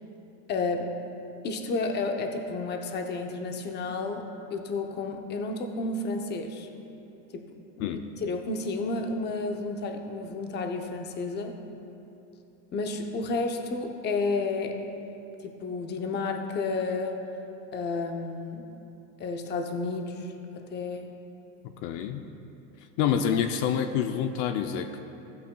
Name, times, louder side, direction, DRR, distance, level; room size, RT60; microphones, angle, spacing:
voice 1, 0.5-0.9 1.4-4.3 4.5-6.7 7.3-7.5 7.8-11.6 12.7-14.8 15.4-17.2 17.7-18.7 19.2-21.1, left 3 dB, 30° left, 4 dB, 0.7 m, -31 dB
voice 2, 7.8-8.1 21.8-22.2 23.0-25.0, left 8 dB, 70° left, 7 dB, 0.6 m, -27 dB
15.0 x 8.4 x 2.3 m, 3.0 s
cardioid pair, 145°, 36 cm